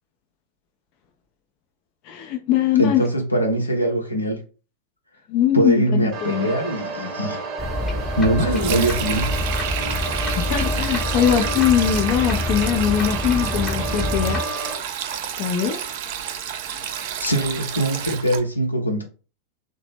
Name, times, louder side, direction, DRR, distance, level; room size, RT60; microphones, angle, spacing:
voice 1, 2.0-3.0 5.3-6.5 10.4-14.5 15.4-15.8 16.7-16.9, left 10 dB, 45° left, 0.4 m, -21 dB
voice 2, 2.8-4.4 5.5-7.4 8.2-9.4 17.2-19.0, right 1 dB, 85° left, 0.7 m, -22 dB
sound 1, 6.1-14.8, right 2 dB, 30° right, 0.9 m, -31 dB
sound 2, 7.6-14.4, left 1 dB, 10° left, 0.7 m, -27 dB
Sink (filling or washing), 8.4-18.4, right 9 dB, 50° right, 0.4 m, -30 dB
2.8 x 2.0 x 3.3 m
figure-of-eight pair, 90°, 0 cm